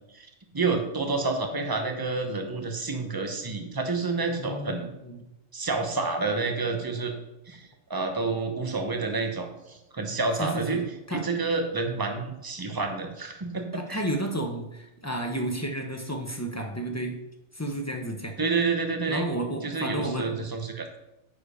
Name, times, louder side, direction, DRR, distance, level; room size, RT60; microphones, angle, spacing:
voice 1, 0.5-4.8 5.5-7.1 7.5-10.8 11.1-14.0 18.4-19.3 19.6-20.9, right 3 dB, 20° right, 4 dB, 0.9 m, -29 dB
voice 2, 4.4-5.3 10.4-10.8 11.1-11.2 13.7-17.2 17.5-18.3 19.1-20.4, right 1 dB, 15° left, 2 dB, 0.9 m, -32 dB
9.7 x 4.9 x 5.0 m, 0.89 s
omnidirectional pair, 1.3 m